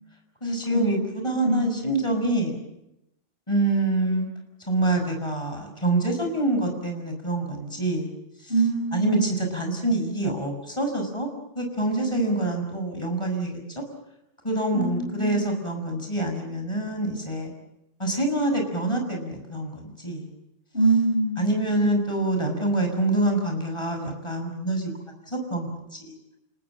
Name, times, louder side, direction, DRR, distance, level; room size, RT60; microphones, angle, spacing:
voice 1, 0.4-2.6 3.5-4.3 4.7-8.1 8.4-8.5 8.9-11.3 11.5-13.8 14.4-17.5 18.0-20.3 21.4-24.9 25.3-26.1, right 2 dB, 25° left, 4 dB, 6.5 m, -26 dB
voice 2, 1.4-1.8 8.5-9.3 14.7-15.4 20.7-21.5, right 2 dB, 50° left, -2 dB, 8.4 m, -24 dB
29.5 x 19.0 x 7.5 m, 0.86 s
omnidirectional pair, 1.2 m